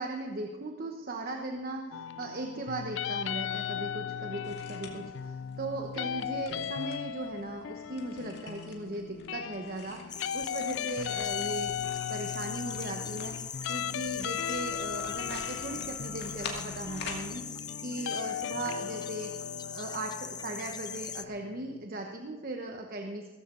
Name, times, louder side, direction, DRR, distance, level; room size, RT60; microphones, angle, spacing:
voice 1, 0.0-11.7 12.1-19.3 19.7-23.3, right 2 dB, 50° right, 3 dB, 1.0 m, -38 dB
sound 1, 1.9-21.9, left 8 dB, 75° left, 0.4 m, -37 dB
sound 2, 4.4-17.3, left 4 dB, 60° left, 2.3 m, -48 dB
sound 3, 10.1-21.2, left 7 dB, 20° left, 0.5 m, -41 dB
17.0 x 15.0 x 3.8 m, 1.3 s
head